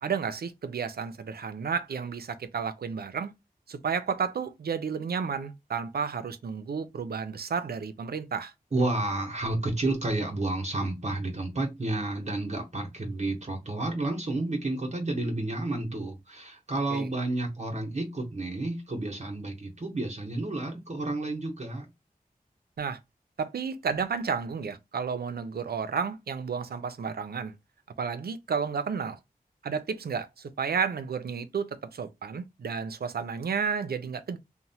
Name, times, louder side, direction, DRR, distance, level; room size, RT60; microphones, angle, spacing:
voice 1, 0.0-3.3 3.7-8.5 16.9-17.1 22.8-23.0 23.4-27.5 28.0-29.2 29.6-34.4, right 6 dB, 80° right, 0.4 m, -32 dB
voice 2, 8.7-21.9, right 2 dB, 45° right, 0.8 m, -31 dB
2.9 x 2.0 x 2.7 m
wide cardioid pair, 55°, 16 cm